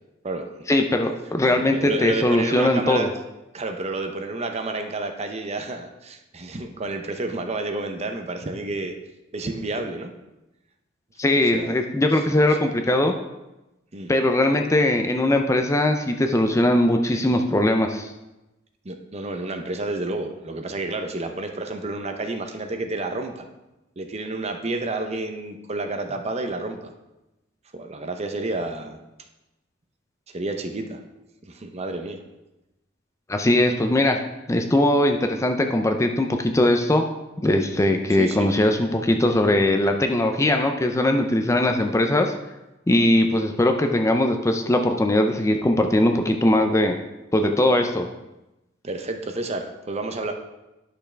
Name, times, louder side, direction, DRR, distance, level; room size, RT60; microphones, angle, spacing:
voice 1, 0.7-3.1 11.2-13.1 14.1-18.1 33.3-34.2 34.5-37.1 37.4-42.3 42.9-47.0 47.3-48.1, left 1 dB, 15° left, 5 dB, 0.5 m, -20 dB
voice 2, 1.4-3.1 3.5-8.9 9.3-10.1 11.5-11.7 12.5-12.6 13.9-14.1 18.8-23.5 24.0-26.9 27.7-29.0 30.3-31.0 31.5-32.2 38.2-38.5 48.8-50.3, right 2 dB, 35° right, 6 dB, 0.7 m, -30 dB
11.0 x 6.1 x 3.3 m, 0.99 s
head